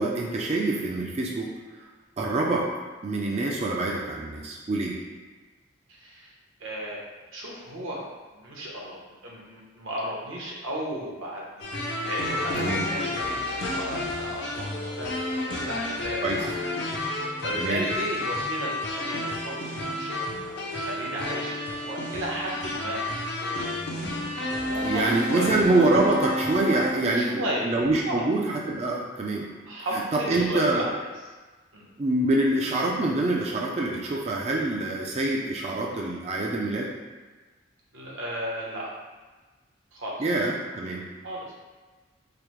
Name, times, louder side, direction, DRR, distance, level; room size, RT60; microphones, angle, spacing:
voice 1, 0.0-1.5 2.2-2.7 3.0-5.0 12.6-12.8 16.2-16.4 17.6-17.9 24.8-29.5 29.9-30.9 32.0-36.9 40.2-41.0, right 2 dB, 30° right, -2 dB, 0.3 m, -25 dB
voice 2, 6.0-6.3 6.6-7.0 7.3-8.1 8.3-11.7 12.0-16.5 16.8-23.1 24.4-25.6 27.1-27.7 28.1-28.3 29.6-31.1 31.7-31.9 37.9-39.0 39.9-40.3 41.2-41.5, equal, 75° right, -4 dB, 0.9 m, -34 dB
sound 1, 11.6-26.9, left 1 dB, 55° left, 0.6 m, -31 dB
4.9 x 2.1 x 3.0 m, 1.3 s
head